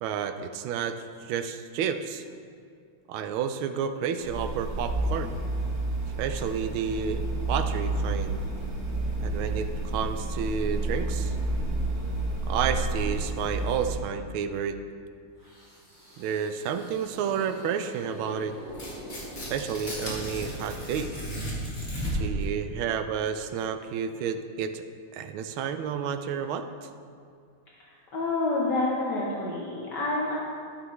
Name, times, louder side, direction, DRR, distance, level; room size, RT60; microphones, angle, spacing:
voice 1, 0.0-2.2 3.1-5.3 6.2-8.4 9.2-11.3 12.5-14.8 16.2-18.5 19.5-21.1 22.1-24.8 25.1-26.7, right 7 dB, 80° right, 9 dB, 1.4 m, -31 dB
sound 1, 4.2-14.0, right 2 dB, 50° right, 2.0 m, -30 dB
sound 2, 15.4-20.5, right 1 dB, 10° right, 2.2 m, -45 dB
Tearing, 18.7-22.4, equal, 35° left, 2.0 m, -34 dB
voice 2, 28.1-30.4, left 2 dB, 60° left, -5 dB, 1.5 m, -28 dB
12.5 x 7.0 x 3.1 m, 2.3 s
omnidirectional pair, 2.3 m